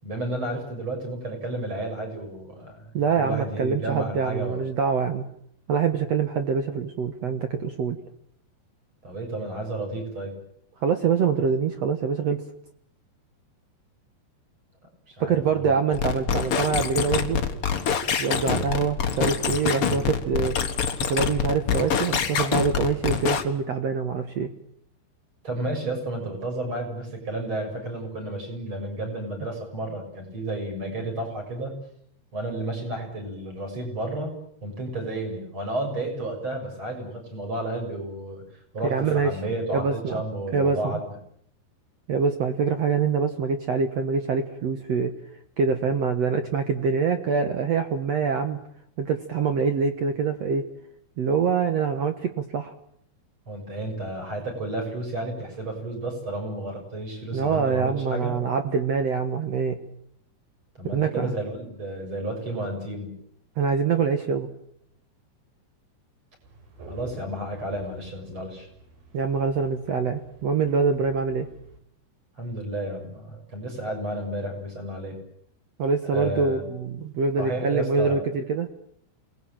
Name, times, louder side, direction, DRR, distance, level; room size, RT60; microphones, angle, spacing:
voice 1, 0.0-2.9 3.2-4.7 9.0-10.3 15.1-16.0 25.4-31.7 32.3-34.3 34.6-38.4 38.7-41.1 53.5-58.3 60.7-63.2 66.9-68.7 72.4-75.2 76.1-76.7 77.4-78.2, right 1 dB, 30° right, 3 dB, 7.7 m, -32 dB
voice 2, 2.9-5.2 5.7-8.0 10.8-12.4 15.2-17.4 18.2-20.6 21.1-24.5 38.9-39.4 39.7-40.1 40.5-41.0 42.1-45.1 45.6-48.6 49.0-50.7 51.2-52.7 57.3-59.8 60.9-61.3 63.6-64.5 69.1-71.5 75.8-78.7, right 5 dB, 75° right, 8 dB, 1.5 m, -25 dB
sound 1, 15.9-23.4, left 7 dB, 55° left, 1.6 m, -26 dB
sound 2, 66.4-71.8, right 3 dB, 55° right, 5.8 m, -48 dB
28.0 x 20.0 x 9.1 m, 0.70 s
omnidirectional pair, 5.0 m